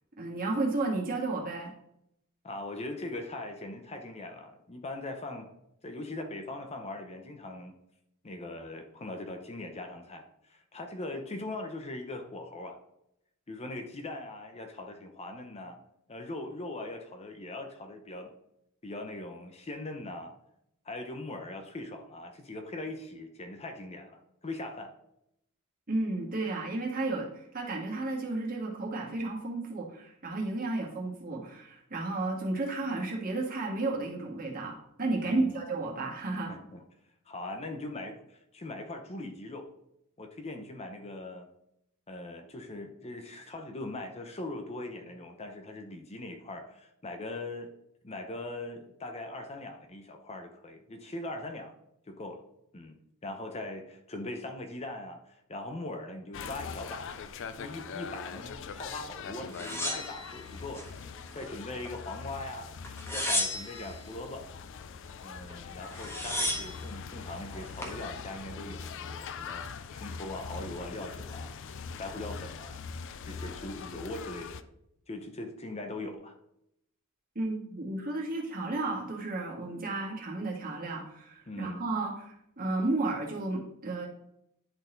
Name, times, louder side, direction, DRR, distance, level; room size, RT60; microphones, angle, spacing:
voice 1, 0.2-1.7 25.9-36.5 77.4-84.1, right 2 dB, 40° right, -2 dB, 1.8 m, -33 dB
voice 2, 2.4-5.5 5.8-7.7 8.2-12.8 13.5-15.8 16.1-18.3 18.8-20.3 20.8-24.9 35.2-35.6 36.5-36.8 37.3-39.7 40.2-41.5 42.1-47.7 48.0-51.7 52.1-52.4 52.7-53.0 53.2-57.1 57.6-60.9 61.3-62.7 63.1-64.4 65.2-69.7 69.9-72.8 73.2-74.6 75.1-76.3 81.5-81.8, left 2 dB, 30° left, 5 dB, 0.7 m, -40 dB
sound 1, 56.3-74.6, left 6 dB, 60° left, 0.4 m, -42 dB
sound 2, 59.5-60.9 61.3-62.1 62.8-63.9 65.5-65.6 65.8-66.8 67.5-68.0, left 1 dB, 10° left, 1.2 m, -33 dB
10.5 x 4.1 x 3.9 m, 0.79 s
head